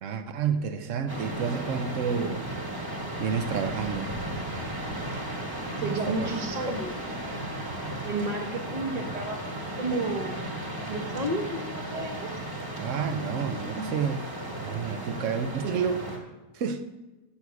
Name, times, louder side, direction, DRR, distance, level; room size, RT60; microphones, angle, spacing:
voice 1, 0.0-2.5 3.2-4.1 5.8-6.3 12.8-14.3 14.6-16.1 16.5-16.8, right 6 dB, 65° right, 9 dB, 0.9 m, -30 dB
sound 1, 1.1-16.2, right 1 dB, 15° right, 1.3 m, -35 dB
voice 2, 5.6-6.9 8.0-10.3 10.9-12.3, right 2 dB, 30° right, 2 dB, 0.8 m, -32 dB
8.1 x 7.2 x 5.9 m, 1.1 s
omnidirectional pair, 1.7 m